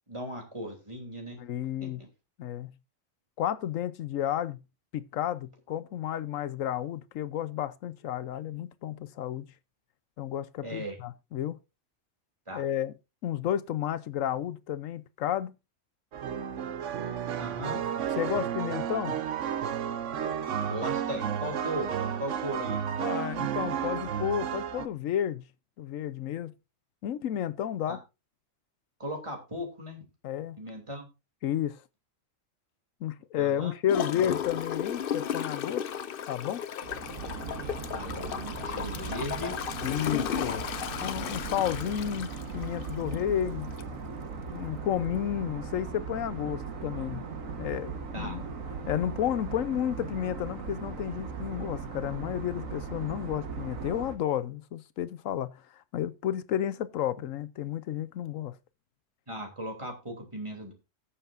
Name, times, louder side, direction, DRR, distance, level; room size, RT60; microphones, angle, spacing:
voice 1, 0.1-1.4 1.8-2.1 10.6-11.0 12.5-12.6 17.4-17.8 20.7-22.8 27.9-28.0 29.0-30.0 30.6-31.1 33.4-33.7 37.9-39.6 48.1-48.4 59.3-60.7, equal, 20° right, 3.1 m, -37 dB
voice 2, 1.4-2.0 2.4-2.7 3.4-4.6 4.9-9.5 10.2-11.6 12.5-12.9 13.2-15.5 18.2-19.2 23.0-25.4 25.8-26.5 27.0-28.0 30.2-30.6 31.4-31.8 33.0-35.9 36.3-36.6 39.8-40.7 41.0-43.7 44.5-47.2 47.6-48.4 48.9-55.6 55.9-58.6, left 10 dB, 80° left, 1.1 m, -32 dB
sound 1, 16.1-24.9, right 8 dB, 70° right, 1.1 m, -32 dB
Gurgling / Toilet flush, 33.9-43.3 43.8-43.9, left 8 dB, 55° left, 0.7 m, -34 dB
sound 2, 36.8-54.2, right 5 dB, 90° right, 1.7 m, -38 dB
20.5 x 7.1 x 2.5 m
omnidirectional pair, 1.3 m